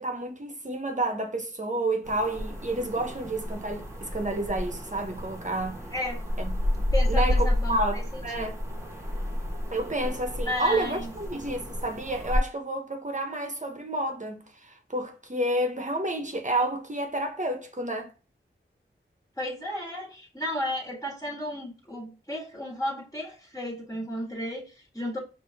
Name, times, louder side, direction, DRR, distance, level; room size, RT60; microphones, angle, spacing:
voice 1, 0.0-5.8 6.4-8.6 9.7-18.1, right 1 dB, 35° right, 1.1 m, -30 dB
sound 1, 2.0-12.4, left 1 dB, 15° right, 1.4 m, -30 dB
voice 2, 6.9-8.5 10.5-11.1 19.4-25.2, left 1 dB, 15° left, 1.8 m, -33 dB
5.1 x 2.9 x 3.4 m
wide cardioid pair, 50°, 21 cm